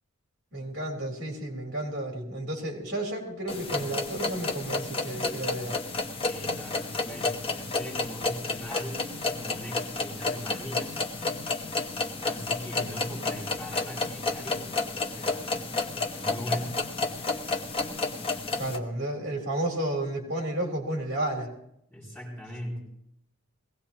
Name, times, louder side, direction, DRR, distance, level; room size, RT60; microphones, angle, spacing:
voice 1, 0.5-5.8 18.6-21.5, right 1 dB, 50° right, 1 dB, 3.4 m, -32 dB
sound 1, 3.5-18.8, left 3 dB, 25° left, 0.9 m, -31 dB
voice 2, 6.3-11.0 12.2-15.7 16.1-16.8 21.9-22.9, equal, 10° left, -6 dB, 6.1 m, -40 dB
21.0 x 17.0 x 2.9 m, 0.76 s
head